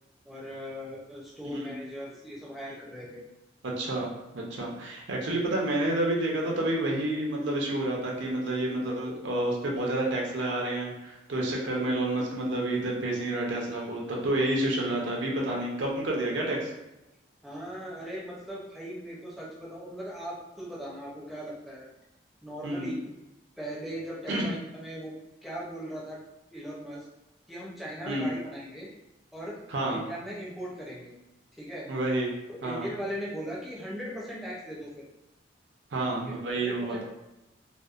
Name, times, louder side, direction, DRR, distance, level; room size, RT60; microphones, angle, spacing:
voice 1, 0.2-3.2 5.2-5.4 17.4-21.9 22.4-22.9 23.6-25.1 25.4-26.2 26.5-27.1 27.5-28.9 29.3-29.6 29.9-31.1 31.5-31.9 32.6-35.1 36.2-37.0, equal, ahead, -6 dB, 0.5 m, -39 dB
voice 2, 3.6-16.7 22.6-22.9 24.3-24.5 28.1-28.3 29.7-30.0 31.9-32.3 32.6-32.9 35.9-37.0, right 1 dB, 70° right, -1 dB, 0.5 m, -29 dB
2.7 x 2.0 x 2.3 m, 0.95 s
head